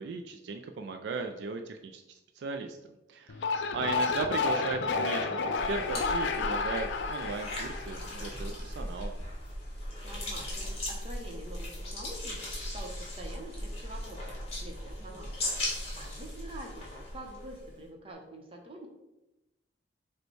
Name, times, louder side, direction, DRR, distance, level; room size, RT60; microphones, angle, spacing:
voice 1, 0.0-2.8 3.1-9.1, right 4 dB, 70° right, 5 dB, 0.3 m, -37 dB
sound 1, 3.3-8.6, left 4 dB, 75° left, 0.4 m, -31 dB
voice 2, 3.9-4.5 10.0-12.4 12.7-14.3 14.6-16.9 17.1-18.9, right 1 dB, 30° right, 1 dB, 0.8 m, -46 dB
sound 2, 5.6-17.8, left 1 dB, 35° left, 1.4 m, -38 dB
5.2 x 2.2 x 4.5 m, 0.96 s
head